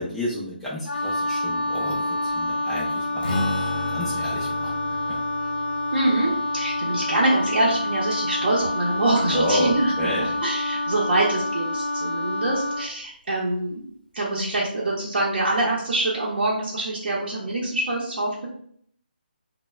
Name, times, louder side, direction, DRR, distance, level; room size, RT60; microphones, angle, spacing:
voice 1, 0.0-5.2 9.2-10.4, left 1 dB, 5° left, -8 dB, 0.4 m, -31 dB
Wind instrument woodwind instrument, 0.9-12.9, left 2 dB, 90° left, 0.4 m, -27 dB
Strum, 3.2-8.8, left 1 dB, 55° left, 0.7 m, -34 dB
voice 2, 5.9-13.8 14.1-18.5, right 2 dB, 65° right, -6 dB, 0.7 m, -25 dB
2.2 x 2.1 x 3.1 m, 0.62 s
figure-of-eight pair, 160°, 6 cm